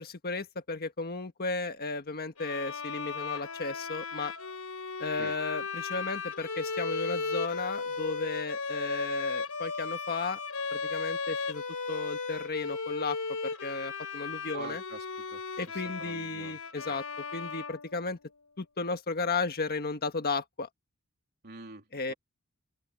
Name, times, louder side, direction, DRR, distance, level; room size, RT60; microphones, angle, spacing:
voice 1, 0.0-4.3 5.0-10.4 10.7-11.6 11.9-13.2 13.4-14.8 15.6-17.0 17.3-18.2 18.6-20.7 21.9-22.1, left 3 dB, 45° left, 1.5 m, -34 dB
Bowed string instrument, 2.4-18.4, left 4 dB, 80° left, 4.3 m, -36 dB
voice 2, 14.5-16.6 16.9-17.0 21.4-22.1, right 3 dB, 45° right, 3.3 m, -46 dB
open air
head